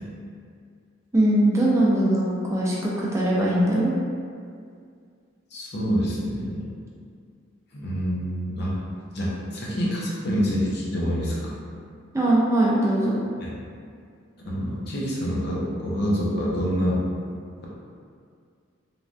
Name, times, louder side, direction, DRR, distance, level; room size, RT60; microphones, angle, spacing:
voice 1, 1.1-3.9 12.1-13.2, right 1 dB, 15° right, -6 dB, 0.4 m, -21 dB
voice 2, 5.5-6.7 7.7-8.7 9.1-11.5 13.4-13.6 14.5-17.0, equal, 55° left, -5 dB, 0.6 m, -26 dB
3.1 x 2.2 x 2.5 m, 2.2 s
head